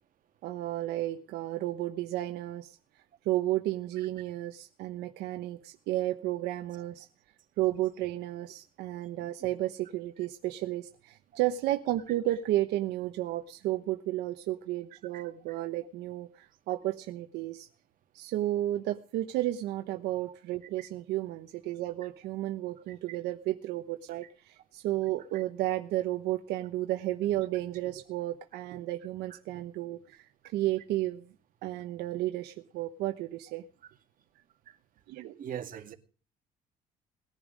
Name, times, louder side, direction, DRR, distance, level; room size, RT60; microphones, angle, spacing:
voice 1, 0.4-2.8 3.2-7.1 7.6-17.7 18.1-31.2 31.6-33.6 35.1-35.3, right 15 dB, 85° right, 1.1 m, -32 dB
voice 2, 35.4-35.9, right 9 dB, 55° right, 2.2 m, -41 dB
19.5 x 11.0 x 5.2 m
cardioid pair, 110°, 17 cm